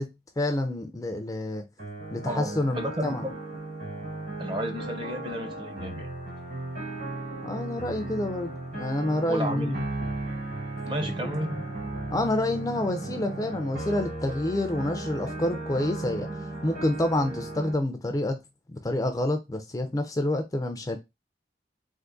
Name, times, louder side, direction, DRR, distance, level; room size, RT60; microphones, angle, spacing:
voice 1, 0.0-1.6 2.1-3.2 7.4-9.8 11.2-11.3 12.1-16.3 16.6-18.4 18.7-21.0, left 1 dB, 20° left, 0.3 m, -28 dB
sound 1, 1.8-17.7, right 2 dB, 65° right, 2.1 m, -36 dB
voice 2, 2.3-3.4 4.4-6.1 9.3-10.1 10.8-11.6, equal, 25° right, 0.5 m, -33 dB
3.5 x 2.5 x 2.5 m
head